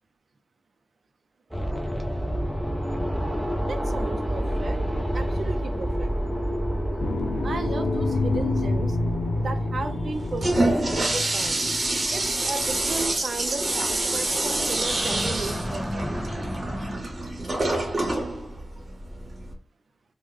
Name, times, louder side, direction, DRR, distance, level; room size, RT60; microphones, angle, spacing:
sound 1, 1.5-11.4 14.6-16.9, equal, ahead, 0.5 m, -30 dB
voice 1, 3.7-4.8 5.1-6.1 7.4-9.0 9.3-11.7 12.1-16.1, right 3 dB, 70° right, 7 dB, 0.5 m, -34 dB
sound 2, 7.0-12.7, left 2 dB, 85° left, 0.6 m, -28 dB
Toilet flush, 10.1-19.5, right 2 dB, 40° right, 0.8 m, -27 dB
3.5 x 2.1 x 3.1 m, 0.40 s
wide cardioid pair, 135°, 0 cm